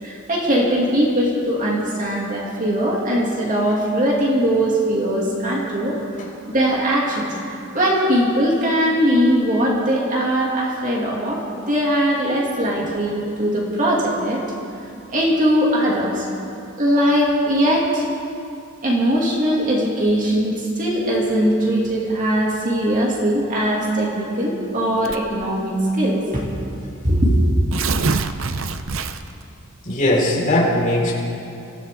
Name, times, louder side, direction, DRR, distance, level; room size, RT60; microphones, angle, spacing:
voice 1, 0.0-5.9 6.5-11.4 11.7-14.4 15.1-16.2 16.8-18.0 18.8-26.4 26.8-27.3, equal, 40° right, -4 dB, 2.6 m, -20 dB
Tearing, 25.0-25.4 26.3-26.4 26.7-26.8 27.5-29.4, right 4 dB, 65° right, 0.7 m, -25 dB
voice 2, 29.8-31.1, left 1 dB, 40° left, -6 dB, 4.6 m, -19 dB
25.0 x 15.5 x 3.8 m, 2.6 s
head